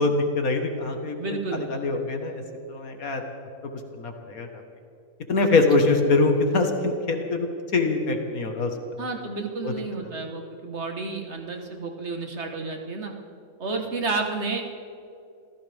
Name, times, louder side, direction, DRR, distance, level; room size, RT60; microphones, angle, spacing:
voice 1, 0.0-1.2 1.5-2.4 2.7-3.2 4.0-4.6 5.3-8.8 9.6-9.7, left 3 dB, 70° left, 4 dB, 2.0 m, -23 dB
voice 2, 1.2-1.6 9.0-13.1 13.6-14.6, right 3 dB, 50° right, 2 dB, 1.7 m, -31 dB
26.5 x 15.0 x 3.6 m, 2.5 s
omnidirectional pair, 1.5 m